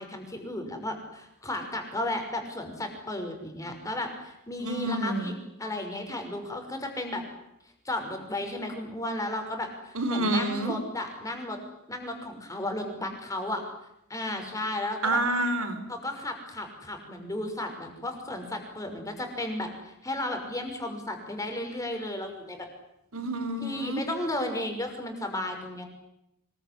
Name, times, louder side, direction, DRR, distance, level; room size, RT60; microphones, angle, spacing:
voice 1, 0.0-7.2 7.8-11.6 11.9-13.6 14.1-15.2 15.9-22.7 23.6-25.8, left 1 dB, 15° left, 4 dB, 6.0 m, -34 dB
voice 2, 4.6-5.3 10.0-10.7 15.0-15.8 23.1-24.0, right 1 dB, 70° right, 10 dB, 4.5 m, -28 dB
25.5 x 22.5 x 9.8 m, 0.83 s
head